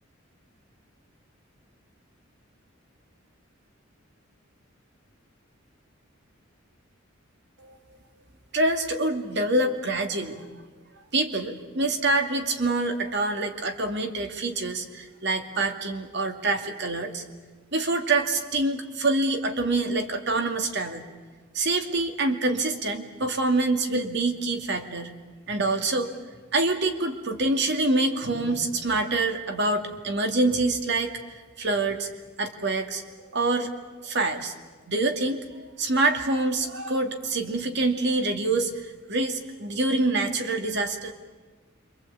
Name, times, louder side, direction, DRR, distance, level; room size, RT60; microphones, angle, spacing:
voice 1, 8.5-10.5 11.1-17.2 17.7-21.0 21.5-25.1 25.5-26.1 26.5-31.1 31.6-32.1 32.4-33.0 33.3-33.8 34.0-34.5 34.9-41.1, right 2 dB, 60° right, 6 dB, 2.4 m, -26 dB
27.5 x 24.5 x 8.5 m, 1.3 s
head